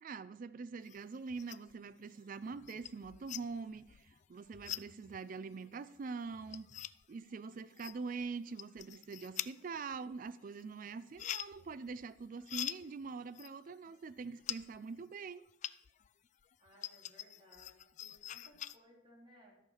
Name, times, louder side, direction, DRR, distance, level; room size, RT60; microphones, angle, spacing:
voice 1, 0.0-6.7 7.1-15.5, right 4 dB, 45° right, 0.4 m, -44 dB
sound 1, 0.8-1.8 2.2-16.1 16.4-18.8, left 11 dB, 40° left, 0.3 m, -46 dB
voice 2, 16.6-19.6, equal, 25° right, 3.1 m, -62 dB
13.5 x 6.5 x 5.5 m
head